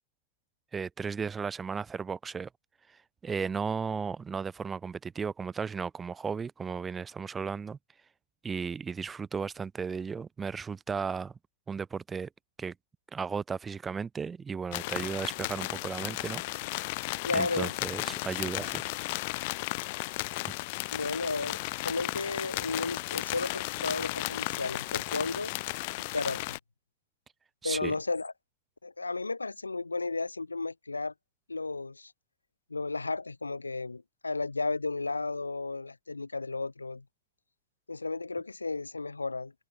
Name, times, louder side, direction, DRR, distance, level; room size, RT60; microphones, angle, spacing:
voice 1, 0.7-2.5 3.2-7.8 8.4-11.3 11.7-12.3 12.6-12.7 13.1-16.4 17.3-18.8 27.6-27.9, right 5 dB, 15° right, 0.7 m, -35 dB
sound 1, 14.7-26.6, left 24 dB, 50° left, 0.9 m, -34 dB
voice 2, 17.2-17.7 20.9-25.5 26.1-26.6 27.6-28.3 28.8-31.1 31.5-32.1 32.7-37.0 37.9-39.5, left 3 dB, 80° left, 0.3 m, -33 dB
figure-of-eight pair, 90°, 0 cm